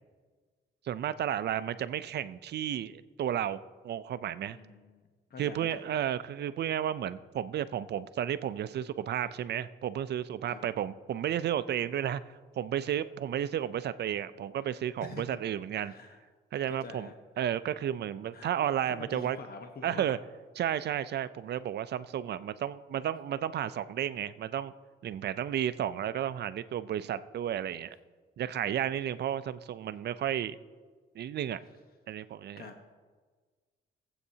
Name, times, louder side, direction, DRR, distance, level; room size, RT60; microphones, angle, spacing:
voice 1, 0.9-3.6 3.8-4.6 5.4-12.2 12.6-15.9 16.5-17.1 17.4-19.4 19.8-20.2 20.5-24.7 25.0-28.0 28.4-30.6 31.2-31.6 32.1-32.7, right 10 dB, 55° right, 14 dB, 0.5 m, -32 dB
voice 2, 4.5-5.0 5.3-6.0 10.5-10.6 14.6-14.7 15.0-15.2 15.8-16.2 16.7-17.1 18.3-18.5 18.9-20.2 28.6-28.8 32.6-32.8, left 4 dB, 50° left, 4 dB, 1.1 m, -46 dB
20.0 x 8.1 x 2.8 m, 1.5 s
cardioid pair, 90°, 20 cm